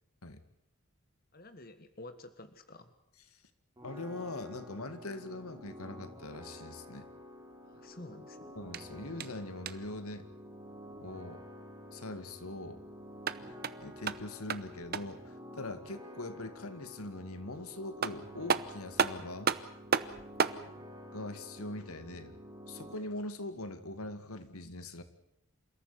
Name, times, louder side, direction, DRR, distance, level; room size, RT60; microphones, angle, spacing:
voice 1, 1.3-2.9 7.6-8.5 20.4-20.7, left 2 dB, 45° left, 9 dB, 1.5 m, -50 dB
voice 2, 3.8-7.1 8.6-10.3 11.0-11.4 11.9-12.8 13.4-19.5 21.1-22.4 22.7-25.0, left 2 dB, 85° left, 11 dB, 2.1 m, -42 dB
sound 1, 3.8-23.0, equal, 15° right, 5.0 m, -50 dB
sound 2, 8.6-10.0 13.0-15.3 17.5-17.6 18.0-20.6, right 6 dB, 45° right, 0.9 m, -34 dB
28.0 x 14.0 x 9.3 m, 0.78 s
head